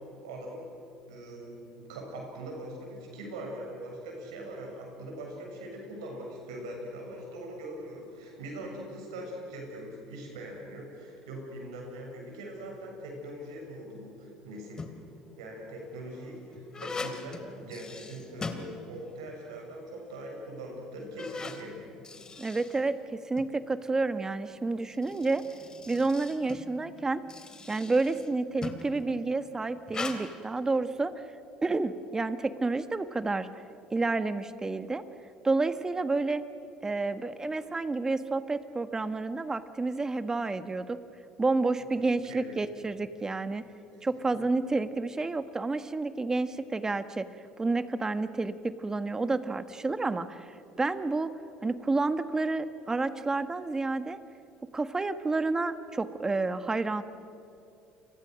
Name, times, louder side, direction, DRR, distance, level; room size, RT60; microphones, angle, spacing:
voice 1, 0.2-0.7 1.1-14.8 15.4-21.8 41.8-42.5, right 1 dB, 85° right, 0 dB, 7.1 m, -42 dB
sound 1, 14.5-15.2 15.9-19.3 19.6-19.7 20.4-20.5 21.0-23.5 24.7-29.0 29.9-30.2, left 4 dB, 25° left, 2.9 m, -41 dB
voice 2, 22.4-23.0 23.2-25.4 25.9-27.2 27.7-31.1 31.6-33.5 33.9-35.0 35.4-36.4 36.8-41.0 41.4-43.6 44.0-47.3 47.6-50.5 50.8-51.3 51.6-54.2 54.7-57.0, right 3 dB, 20° right, 11 dB, 1.5 m, -29 dB
29.5 x 24.0 x 6.5 m, 2.7 s
hypercardioid pair, 70°, 3 cm